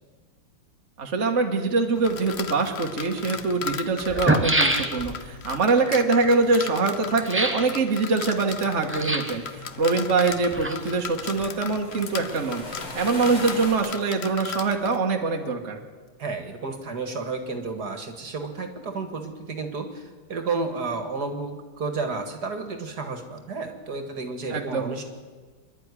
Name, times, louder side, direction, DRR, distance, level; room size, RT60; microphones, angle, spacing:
voice 1, 1.0-12.6 12.9-15.8 24.5-24.9, right 3 dB, 35° right, 2 dB, 1.8 m, -24 dB
sound 1, 2.0-15.0, left 6 dB, 50° left, 0.8 m, -37 dB
sound 2, 2.7-2.8 3.7-3.8 4.0-5.3 7.2-7.7 8.9-9.4 10.3-11.1 11.4-11.5, right 1 dB, 10° right, 1.1 m, -25 dB
sound 3, 8.5-13.7, left 1 dB, 70° left, 6.2 m, -41 dB
voice 2, 16.2-25.0, right 4 dB, 55° right, 6 dB, 2.3 m, -32 dB
25.5 x 11.5 x 9.9 m, 1.4 s
omnidirectional pair, 2.2 m